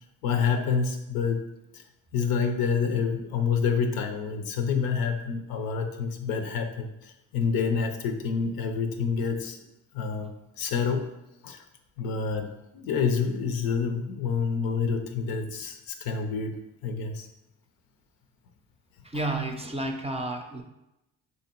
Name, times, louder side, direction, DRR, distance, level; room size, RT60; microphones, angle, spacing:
voice 1, 0.2-1.4 1.7-1.8 2.1-9.6 9.9-11.1 11.4-11.6 12.0-17.3, left 5 dB, 80° left, 6 dB, 0.6 m, -28 dB
voice 2, 19.0-20.6, right 2 dB, 20° right, 4 dB, 0.5 m, -31 dB
3.2 x 2.7 x 4.4 m, 0.91 s
supercardioid pair, 55°, 35 cm